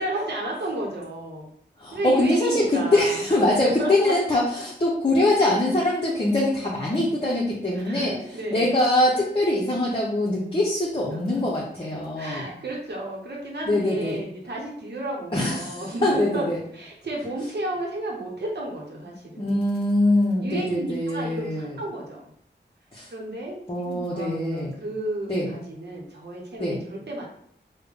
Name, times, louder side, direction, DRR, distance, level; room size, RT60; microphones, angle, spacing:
voice 1, 0.0-1.5 1.9-3.4 3.6-4.2 7.7-8.8 11.3-11.4 12.2-16.5 16.7-19.5 20.4-22.3 23.1-27.2, right 1 dB, 65° right, -2 dB, 0.8 m, -32 dB
voice 2, 1.8-12.5 13.7-14.2 15.3-16.6 19.4-21.8 22.9-23.1 23.7-24.8 25.3-25.5 26.6-26.8, left 1 dB, 30° left, -5 dB, 0.7 m, -23 dB
3.5 x 2.1 x 3.4 m, 0.67 s
wide cardioid pair, 75°, 19 cm